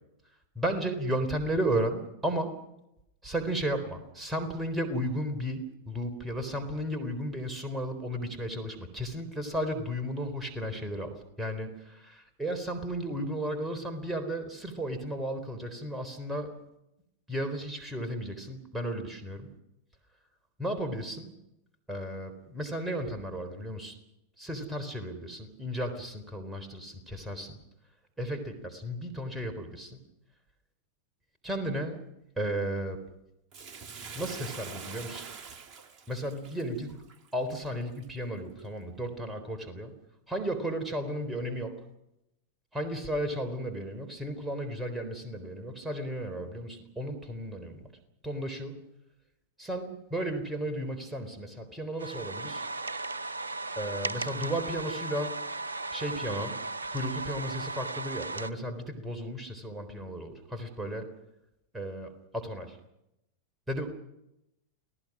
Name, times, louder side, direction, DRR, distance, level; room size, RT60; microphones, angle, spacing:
voice 1, 0.6-2.5 3.2-16.5 17.3-19.5 20.6-21.3 21.9-23.9 24.4-27.6 28.2-30.0 31.4-32.0 32.4-33.0 34.1-35.3 36.1-37.0 37.3-39.9 40.3-41.8 42.7-47.9 48.2-48.8 49.6-52.6 53.8-55.4 55.9-56.6 56.9-61.1 61.7-62.8 63.7-63.9, right 1 dB, 10° right, 6 dB, 3.9 m, -34 dB
Bathtub (filling or washing), 33.5-38.0 38.6-38.7, right 5 dB, 30° right, 2.5 m, -44 dB
sound 1, 52.0-58.5, right 3 dB, 75° right, 0.8 m, -36 dB
29.5 x 18.0 x 6.2 m, 0.86 s
figure-of-eight pair, 90°, 0 cm